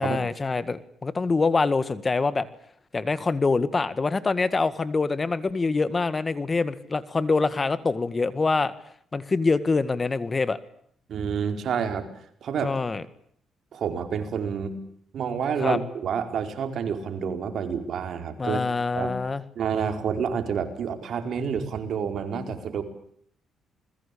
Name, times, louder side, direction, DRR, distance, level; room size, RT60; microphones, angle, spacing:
voice 1, 0.0-2.5 2.9-8.7 9.1-10.6 12.6-13.0 15.6-15.8 18.4-19.4, left 3 dB, 30° left, 15 dB, 1.8 m, -25 dB
voice 2, 11.1-12.1 12.4-12.7 13.7-14.8 15.1-18.6 18.9-19.1 19.5-22.8, right 7 dB, 65° right, 7 dB, 4.8 m, -28 dB
28.5 x 21.5 x 8.6 m, 0.65 s
cardioid pair, 90°, 0 cm